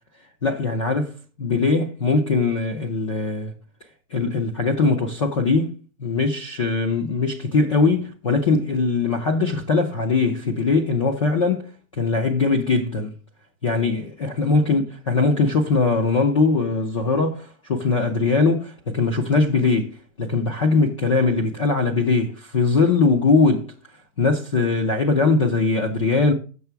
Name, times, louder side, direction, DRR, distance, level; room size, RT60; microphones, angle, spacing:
voice 1, 0.4-3.5 4.1-13.1 13.6-23.7 24.2-26.3, left 3 dB, 25° left, 0.4 m, -21 dB
6.9 x 6.6 x 4.4 m
supercardioid pair, 175°, 41 cm